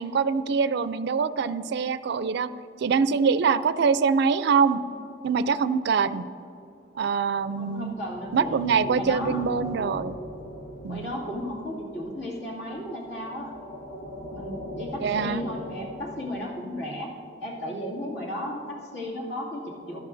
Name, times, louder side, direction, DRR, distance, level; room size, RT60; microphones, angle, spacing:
voice 1, 0.0-2.5 2.8-4.8 5.2-6.3 7.0-7.9 8.3-10.2 10.8-11.1 15.0-15.4, right 5 dB, 65° right, 14 dB, 0.4 m, -24 dB
sound 1, 7.5-16.4, equal, 45° left, 1.0 m, -40 dB
voice 2, 7.6-8.6 8.9-9.4 10.9-13.5 14.3-17.1 17.4-20.0, left 1 dB, 70° left, -3 dB, 2.3 m, -34 dB
15.5 x 12.5 x 2.6 m, 2.7 s
head